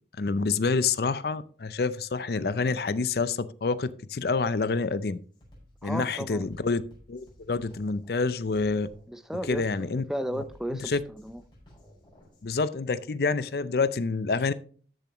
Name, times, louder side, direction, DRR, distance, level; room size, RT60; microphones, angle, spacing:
voice 1, 0.2-5.2 5.8-6.8 7.1-8.9 9.5-10.0 10.7-11.0 12.4-14.5, left 4 dB, 55° left, 15 dB, 0.5 m, -27 dB
Drum kit, 4.7-4.8 5.3-12.5, equal, 25° left, 5.4 m, -55 dB
voice 2, 5.8-6.5 9.1-10.9 11.2-11.4, equal, 5° right, 11 dB, 0.5 m, -34 dB
13.5 x 6.9 x 3.0 m, 0.43 s
head